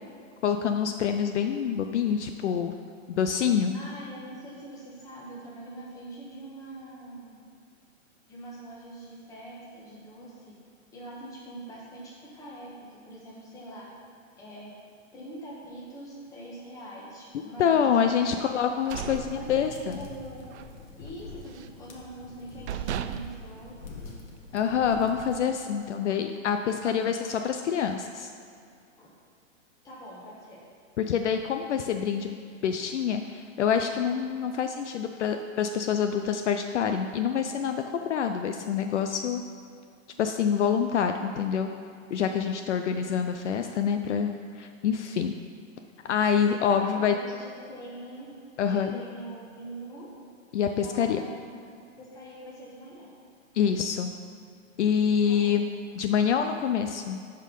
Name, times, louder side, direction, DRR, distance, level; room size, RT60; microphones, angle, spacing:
voice 1, 0.4-2.7 3.2-3.8 17.6-20.0 24.5-28.3 31.0-32.3 32.6-39.4 40.2-41.7 42.1-44.3 44.6-45.4 46.0-47.2 48.6-48.9 50.5-51.2 53.5-54.1 54.8-55.7 56.0-57.2, left 7 dB, 60° left, 6 dB, 0.6 m, -26 dB
voice 2, 3.7-7.4 8.3-10.5 10.9-13.9 14.4-14.7 15.1-17.9 18.2-18.4 19.0-20.4 21.0-24.1 29.0-29.1 29.8-30.6 42.9-43.0 46.7-48.3 48.7-50.1 50.6-51.6 52.0-53.1 55.2-55.6, right 1 dB, 10° left, -6 dB, 1.2 m, -44 dB
sound 1, 18.6-20.1 20.5-20.7 21.1-21.8 22.3-22.4 22.7-24.5, right 9 dB, 60° right, 0.5 m, -37 dB
Fire Crackle with Roaring Chimney, 19.0-25.4, left 4 dB, 75° left, 1.7 m, -46 dB
11.5 x 4.5 x 5.3 m, 2.3 s
hypercardioid pair, 165°, 40 cm